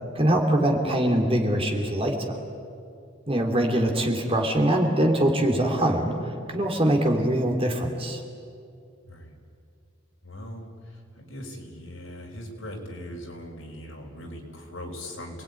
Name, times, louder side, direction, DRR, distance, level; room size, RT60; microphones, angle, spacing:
voice 1, 0.1-2.4 3.3-8.2, right 1 dB, 25° right, 3 dB, 3.0 m, -23 dB
voice 2, 10.2-15.4, left 1 dB, 65° left, 1 dB, 5.2 m, -40 dB
28.5 x 20.0 x 9.7 m, 2.4 s
head